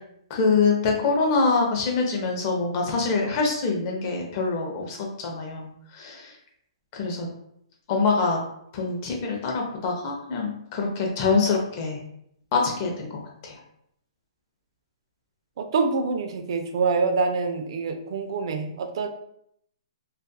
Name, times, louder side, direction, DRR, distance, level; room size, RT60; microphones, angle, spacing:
voice 1, 0.3-6.3 6.9-7.3 7.9-8.4 8.7-12.0 12.5-13.5, left 4 dB, 35° left, 0 dB, 0.6 m, -25 dB
voice 2, 15.6-19.1, right 4 dB, 55° right, 6 dB, 0.4 m, -26 dB
2.6 x 2.4 x 2.2 m, 0.72 s
hypercardioid pair, 155°, 3 cm